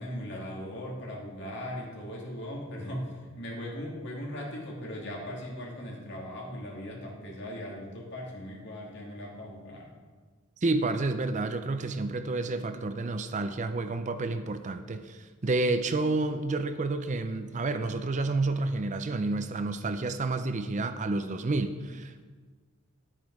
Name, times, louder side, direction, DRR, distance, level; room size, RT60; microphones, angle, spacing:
voice 1, 0.0-9.9, equal, 55° left, -2 dB, 2.5 m, -39 dB
voice 2, 10.6-22.2, right 3 dB, 35° right, 10 dB, 0.5 m, -30 dB
10.5 x 8.9 x 4.8 m, 1.4 s
head